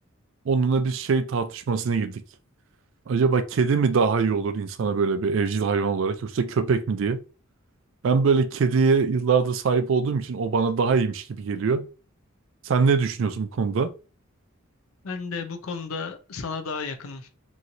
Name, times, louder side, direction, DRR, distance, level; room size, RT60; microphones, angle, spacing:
voice 1, 0.5-2.2 3.1-7.2 8.0-11.9 12.6-13.9, right 5 dB, 65° right, 0.4 m, -23 dB
voice 2, 15.0-17.3, left 4 dB, 85° left, 0.6 m, -33 dB
3.0 x 2.7 x 2.6 m
head